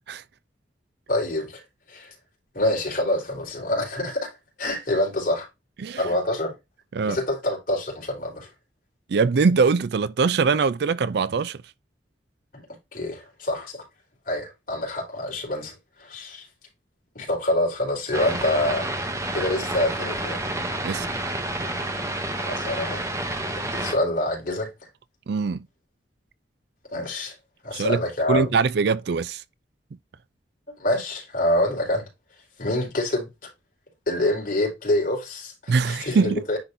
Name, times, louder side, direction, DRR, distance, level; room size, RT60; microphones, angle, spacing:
voice 1, 1.1-1.6 1.9-2.1 2.5-5.5 6.0-6.5 7.0-8.5 12.5-12.6 12.9-13.8 14.3-16.5 17.1-19.0 19.3-20.4 22.4-23.1 23.6-24.7 26.9-27.3 27.6-28.5 30.8-32.1 32.6-33.3 34.1-36.6, left 1 dB, 50° left, 3.9 m, -26 dB
voice 2, 9.1-11.6 20.8-21.1 25.3-25.7 27.7-28.0 28.3-29.4 35.7-36.4, right 4 dB, 60° right, 0.4 m, -22 dB
sound 1, 18.1-23.9, right 1 dB, 15° right, 1.2 m, -29 dB
10.0 x 3.8 x 2.7 m
head